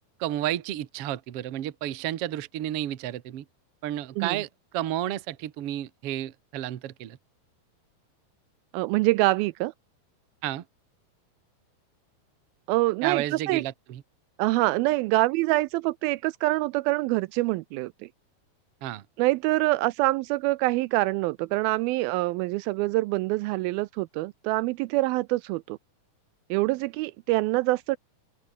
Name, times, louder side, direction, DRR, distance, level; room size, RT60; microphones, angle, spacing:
voice 1, 0.2-3.4 3.8-7.2 10.4-10.6 13.0-14.0 18.8-19.0, right 13 dB, 60° right, 1.6 m, -31 dB
voice 2, 8.7-9.7 12.7-13.6 14.4-18.1 19.2-25.8 26.5-28.0, right 20 dB, 80° right, 2.3 m, -25 dB
open air
omnidirectional pair, 4.4 m